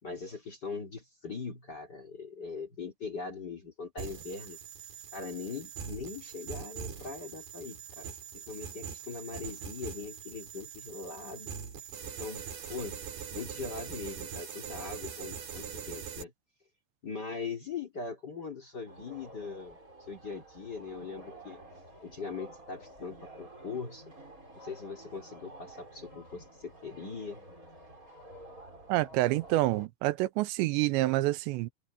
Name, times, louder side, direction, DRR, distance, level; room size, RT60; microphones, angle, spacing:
voice 1, 0.0-4.6 5.1-11.5 12.0-13.0 13.3-16.3 17.0-21.6 22.0-24.0 24.6-27.4, left 5 dB, 30° left, 2.5 m, -41 dB
sound 1, 4.0-16.2, right 7 dB, 65° right, 6.1 m, -42 dB
sound 2, 18.9-29.9, right 1 dB, 20° right, 6.4 m, -51 dB
voice 2, 28.9-31.7, right 17 dB, 90° right, 3.0 m, -27 dB
omnidirectional pair, 5.1 m